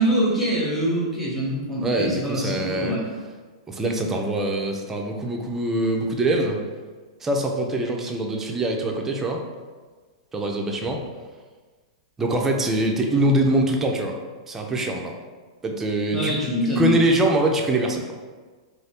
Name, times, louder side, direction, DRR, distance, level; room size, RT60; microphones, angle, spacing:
voice 1, 0.0-3.1 13.1-13.2 16.1-17.0, right 1 dB, 5° left, -6 dB, 0.9 m, -24 dB
voice 2, 1.8-3.0 3.7-6.6 7.2-9.4 10.3-11.0 12.2-14.1 14.5-15.2 15.6-16.3 16.8-18.0, right 1 dB, 10° right, 1 dB, 0.4 m, -23 dB
2.6 x 2.3 x 3.4 m, 1.4 s
hypercardioid pair, 135°, 3 cm